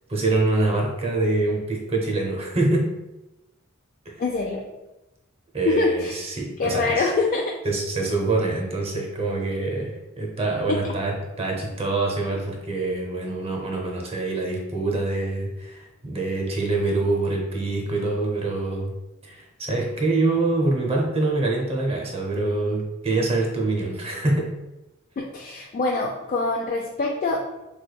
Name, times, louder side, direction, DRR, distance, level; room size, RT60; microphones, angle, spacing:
voice 1, 0.1-2.9 4.1-4.2 5.5-7.1 7.6-18.9 19.2-24.5, right 2 dB, 30° right, 0 dB, 0.6 m, -25 dB
voice 2, 4.2-4.6 5.6-6.2 6.6-7.5 10.7-10.8 25.2-27.4, left 3 dB, 40° left, 0 dB, 0.3 m, -24 dB
3.4 x 3.3 x 2.3 m, 1.0 s
head